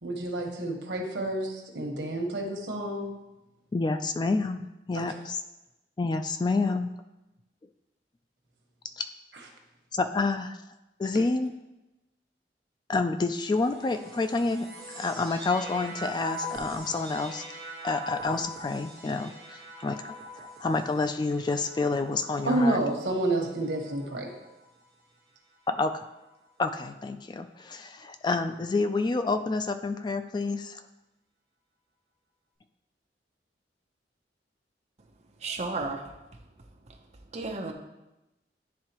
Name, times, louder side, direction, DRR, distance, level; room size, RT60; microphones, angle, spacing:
voice 1, 0.0-3.1 4.9-5.0 22.4-24.3, right 1 dB, 90° right, 1.2 m, -29 dB
voice 2, 3.7-5.4 6.0-6.9 9.0-9.1 9.9-10.6 11.0-11.5 12.9-14.7 15.0-17.4 17.8-20.0 20.4-22.8 25.7-26.0 26.6-30.8, left 3 dB, 25° left, 0.3 m, -28 dB
sound 1, 13.3-24.8 25.6-26.3, equal, 20° right, 1.5 m, -43 dB
voice 3, 35.4-36.1 37.3-37.7, right 3 dB, 40° right, 0.7 m, -33 dB
10.5 x 3.6 x 2.9 m
head